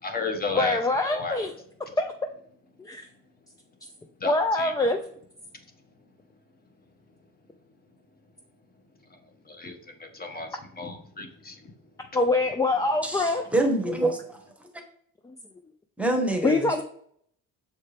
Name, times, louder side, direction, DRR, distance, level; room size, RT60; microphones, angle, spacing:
voice 1, 0.0-1.5 4.2-4.9 9.1-9.2 9.4-11.7 12.0-12.1, left 2 dB, 30° left, 5 dB, 1.0 m, -34 dB
voice 2, 0.5-1.5 2.0-2.1 2.8-3.1 4.2-5.0 12.1-13.5 15.2-15.3 16.4-16.8, left 2 dB, 10° left, 5 dB, 0.3 m, -24 dB
voice 3, 13.0-14.4 16.0-16.8, right 2 dB, 5° right, 3 dB, 1.0 m, -26 dB
6.7 x 4.4 x 3.3 m, 0.65 s
cardioid pair, 135°, 32 cm